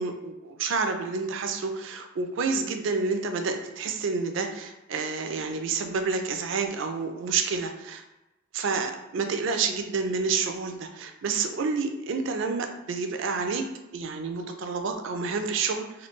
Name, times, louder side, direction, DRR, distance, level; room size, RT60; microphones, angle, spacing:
voice 1, 0.0-8.0 8.5-13.7 13.9-16.1, right 4 dB, 60° right, 5 dB, 0.4 m, -29 dB
3.1 x 2.2 x 3.1 m, 0.99 s
head